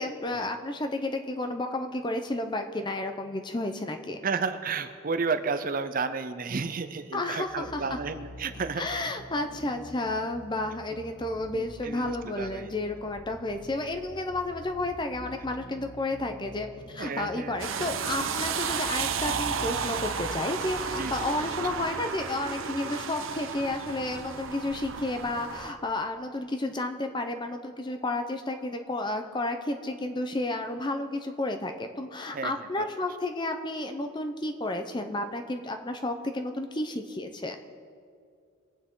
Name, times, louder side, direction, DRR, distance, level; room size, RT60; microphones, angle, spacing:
voice 1, 0.0-4.2 7.1-8.0 8.8-37.6, left 2 dB, 20° left, 6 dB, 0.7 m, -32 dB
voice 2, 4.2-9.0 11.5-12.7 17.0-17.6 21.0-21.6 32.3-32.8, right 4 dB, 40° right, 9 dB, 0.6 m, -32 dB
sound 1, 7.4-22.2, equal, 55° left, 1.6 m, -47 dB
sound 2, 17.6-25.7, right 6 dB, 70° right, 0.8 m, -33 dB
22.5 x 8.5 x 3.8 m, 2.3 s
head